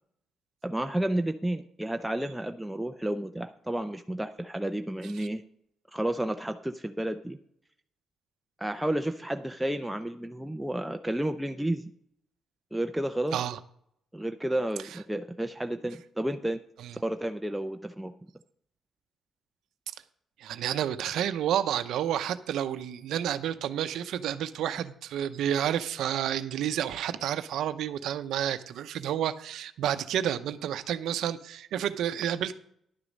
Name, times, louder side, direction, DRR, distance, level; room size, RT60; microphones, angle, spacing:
voice 1, 0.6-5.4 5.9-7.4 8.6-11.9 12.7-13.4 14.1-16.6 16.9-18.3, right 1 dB, 5° right, 5 dB, 0.5 m, -31 dB
voice 2, 20.4-32.5, right 10 dB, 80° right, 11 dB, 0.7 m, -30 dB
11.0 x 6.9 x 5.3 m, 0.68 s
cardioid pair, 90°, 0 cm